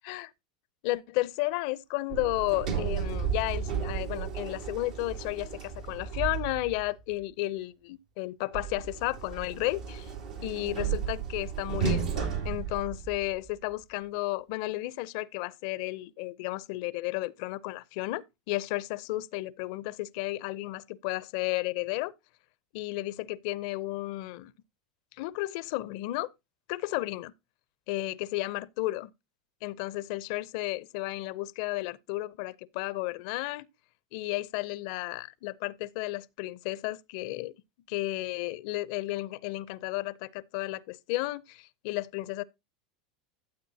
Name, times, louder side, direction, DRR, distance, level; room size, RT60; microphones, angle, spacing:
voice 1, 0.8-10.1 10.4-22.1 22.7-24.5 25.2-26.3 26.7-27.3 27.9-29.1 29.6-33.7 34.1-37.5 37.9-42.4, left 19 dB, 60° left, 0.6 m, -33 dB
Sliding door, 2.1-6.9 8.5-13.5, right 7 dB, 80° right, 3.3 m, -33 dB
12.5 x 7.9 x 2.8 m
hypercardioid pair, 105°, 4 cm